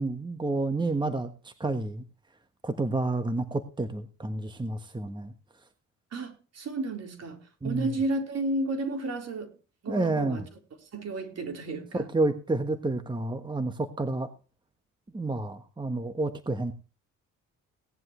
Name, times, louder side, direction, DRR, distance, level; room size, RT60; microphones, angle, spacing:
voice 1, 0.0-2.0 2.6-5.3 7.6-7.9 9.9-10.4 11.9-14.3 15.1-16.7, right 2 dB, 15° right, 1.3 m, -29 dB
voice 2, 6.1-9.5 9.8-10.4 10.9-12.1, right 2 dB, 55° right, 4.0 m, -32 dB
18.0 x 11.0 x 3.1 m
cardioid pair, 90°, 30 cm